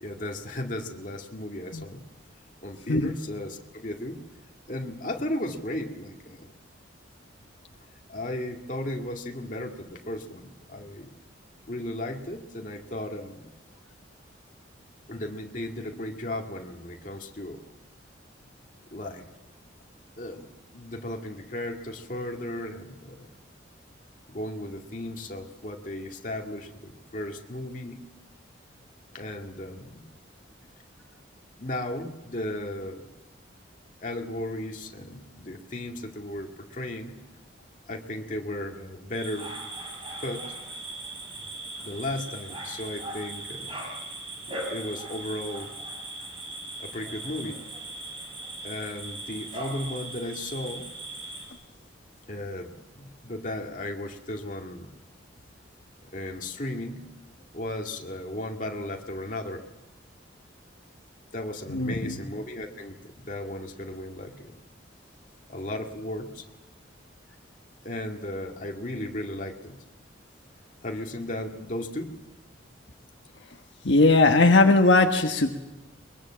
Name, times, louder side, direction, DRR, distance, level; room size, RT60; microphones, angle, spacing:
voice 1, 0.0-2.1 2.6-4.2 4.7-6.5 8.1-11.1 11.7-13.5 15.1-17.7 18.9-19.3 20.2-23.3 24.3-28.1 29.1-30.1 31.6-33.2 34.0-37.2 37.9-39.5 40.2-40.6 41.8-43.8 44.7-45.7 46.8-47.7 48.6-50.9 52.3-54.9 56.0-57.1 57.5-59.7 61.3-64.6 65.5-66.5 67.8-69.8 70.8-72.2, left 1 dB, 40° left, 2 dB, 2.2 m, -35 dB
sound 1, 39.1-51.5, right 2 dB, 30° right, 6.5 m, -39 dB
voice 2, 61.7-62.2 73.8-75.5, left 2 dB, 70° left, 4 dB, 1.3 m, -19 dB
22.5 x 22.5 x 7.5 m, 1.1 s
head